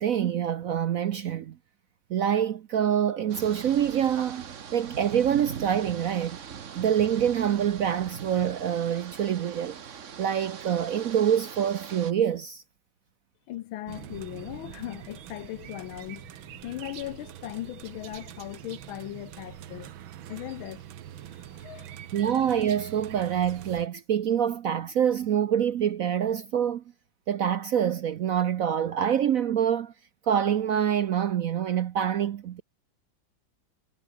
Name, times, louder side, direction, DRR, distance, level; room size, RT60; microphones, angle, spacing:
voice 1, 0.0-1.6 2.1-6.4 6.7-9.8 10.2-12.6 22.1-26.8 27.3-29.9 30.3-32.6, right 9 dB, 65° right, 0.9 m, -26 dB
sound 1, 3.3-12.1, right 7 dB, 45° right, 1.3 m, -41 dB
voice 2, 13.5-19.9 20.3-20.8 21.1-22.0, left 14 dB, 90° left, 1.6 m, -39 dB
sound 2, 13.9-23.9, right 11 dB, 80° right, 1.9 m, -44 dB
omnidirectional pair, 2.2 m